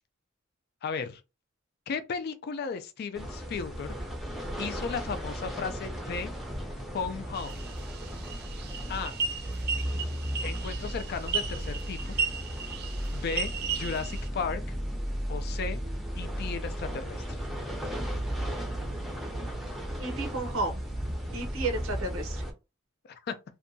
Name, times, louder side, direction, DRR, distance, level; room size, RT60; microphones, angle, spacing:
voice 1, 0.8-1.2 1.9-3.9 4.6-6.3 6.9-7.6 8.9-9.2 10.4-12.2 13.1-14.6 15.3-15.8 16.2-17.4 23.0-23.4, left 5 dB, 50° left, 0.3 m, -35 dB
sound 1, 3.1-22.5, equal, ahead, 0.6 m, -35 dB
sound 2, 7.3-14.3, right 5 dB, 50° right, 0.5 m, -35 dB
voice 2, 20.0-20.8 21.3-22.4, right 2 dB, 90° right, 0.7 m, -33 dB
2.6 x 2.2 x 2.6 m
head